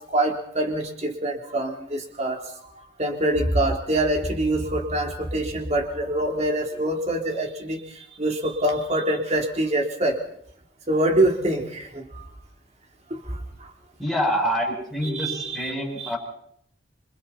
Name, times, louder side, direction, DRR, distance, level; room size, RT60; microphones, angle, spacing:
voice 1, 0.1-2.4 3.0-7.8 8.2-10.2 10.9-12.0 15.0-16.1, right 1 dB, 35° right, 2 dB, 3.4 m, -25 dB
voice 2, 14.0-16.2, equal, ahead, -2 dB, 7.5 m, -26 dB
27.0 x 26.0 x 4.3 m, 0.68 s
head